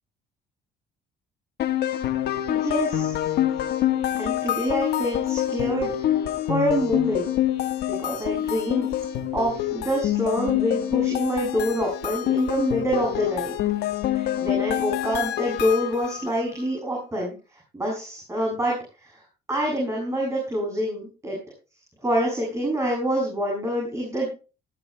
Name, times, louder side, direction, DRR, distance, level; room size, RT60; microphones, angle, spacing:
sound 1, 1.6-16.3, left 12 dB, 75° left, 1.4 m, -26 dB
voice 1, 2.5-3.1 4.2-6.2 6.5-7.3 7.9-8.9 9.3-13.5 14.1-17.3 17.7-18.8 19.0-19.2 19.5-21.4 22.0-24.3, equal, 15° right, -2 dB, 7.5 m, -26 dB
20.0 x 15.0 x 2.2 m, 0.34 s
cardioid pair, 110°, 17 cm